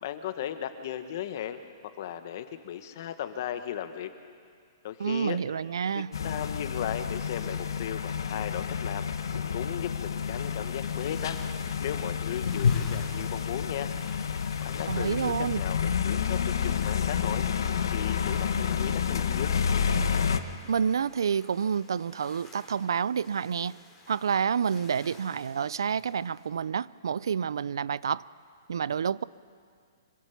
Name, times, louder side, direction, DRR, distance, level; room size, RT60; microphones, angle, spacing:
voice 1, 0.0-4.1 4.8-5.4 5.9-9.1 9.5-13.9 14.6-17.5 17.9-19.6, left 10 dB, 45° left, 9 dB, 1.4 m, -36 dB
voice 2, 5.0-6.1 14.9-15.6 20.7-23.8 24.1-28.2 28.7-29.2, right 7 dB, 85° right, 21 dB, 0.4 m, -29 dB
sound 1, 6.1-20.4, left 7 dB, 80° left, 1.3 m, -29 dB
sound 2, 10.1-26.5, left 4 dB, 15° left, 2.9 m, -54 dB
25.5 x 16.5 x 7.1 m, 2.2 s
hypercardioid pair, 160°, 2 cm